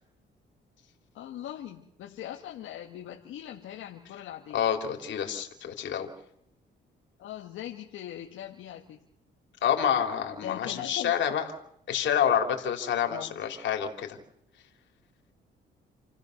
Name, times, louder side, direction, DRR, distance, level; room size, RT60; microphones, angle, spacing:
voice 1, 1.1-4.6 7.2-9.0 10.4-11.1 13.1-13.4, left 11 dB, 85° left, 0 dB, 1.9 m, -40 dB
voice 2, 4.5-6.1 9.6-11.4 11.9-14.2, left 9 dB, 70° left, 4 dB, 3.6 m, -28 dB
29.5 x 16.0 x 6.7 m, 0.80 s
cardioid pair, 90°, 20 cm